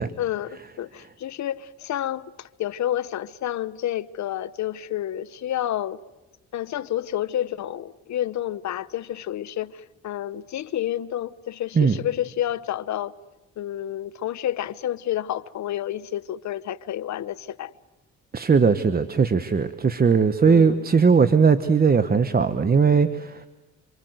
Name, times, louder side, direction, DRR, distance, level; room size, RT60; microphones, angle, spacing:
voice 1, 0.2-6.0 6.5-13.1 13.6-17.7 20.4-20.9, left 12 dB, 65° left, 1.0 m, -29 dB
voice 2, 18.3-23.5, right 5 dB, 30° right, 1.2 m, -19 dB
26.5 x 26.5 x 8.0 m
cardioid pair, 90°, 30 cm